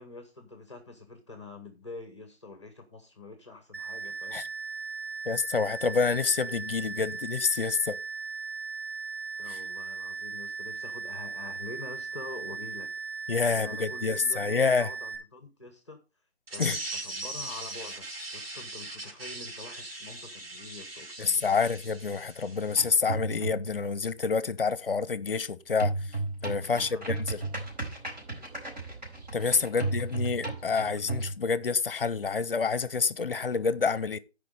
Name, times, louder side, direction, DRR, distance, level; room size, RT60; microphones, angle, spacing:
voice 1, 0.0-4.5 9.4-12.9 13.5-16.0 16.5-21.6 26.6-27.2 29.4-30.0, left 3 dB, 25° left, 1.0 m, -46 dB
sound 1, 3.7-15.2, right 5 dB, 15° right, 2.1 m, -38 dB
voice 2, 5.3-8.0 9.5-9.6 13.3-14.9 16.6-16.8 21.2-25.9 26.4-27.4 29.3-34.2, left 5 dB, 55° left, 0.7 m, -28 dB
sound 2, 16.5-22.9, right 2 dB, 60° right, 2.7 m, -40 dB
sound 3, 22.8-23.8 25.8-31.3, right 3 dB, 40° right, 4.3 m, -34 dB
11.5 x 5.0 x 5.0 m
hypercardioid pair, 175°, 33 cm